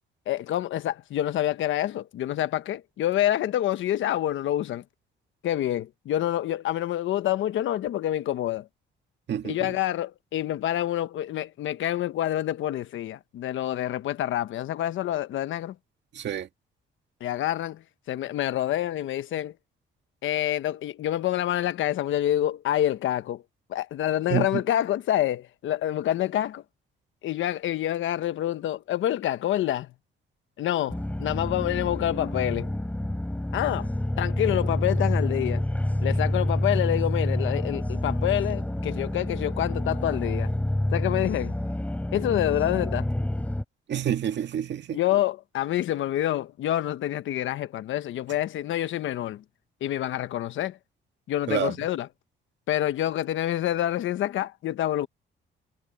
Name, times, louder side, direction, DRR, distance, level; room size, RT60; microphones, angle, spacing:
voice 1, 0.3-4.8 5.4-8.7 9.4-15.7 17.2-17.8 18.1-19.5 20.2-23.4 23.7-26.6 27.2-29.9 30.6-32.7 33.5-33.9 34.2-35.6 36.0-40.5 40.9-41.6 42.1-43.1 44.9-49.4 49.8-50.8 51.3-52.1 52.7-55.1, left 12 dB, 75° left, 1.2 m, -27 dB
voice 2, 9.3-9.7 16.1-16.5 24.3-24.6 43.9-45.0 51.5-51.7, right 10 dB, 65° right, 2.0 m, -28 dB
sound 1, 30.9-43.6, left 1 dB, 5° left, 4.4 m, -28 dB
cardioid pair, 90°, 20 cm